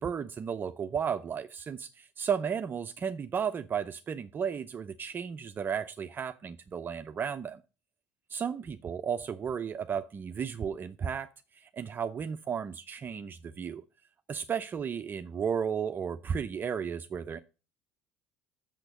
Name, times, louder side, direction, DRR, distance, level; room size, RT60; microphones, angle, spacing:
voice 1, 0.0-7.6 8.3-11.3 11.6-13.8 14.3-17.4, right 7 dB, 35° right, 0.6 m, -34 dB
6.6 x 6.1 x 6.5 m
supercardioid pair, 80°, 6 cm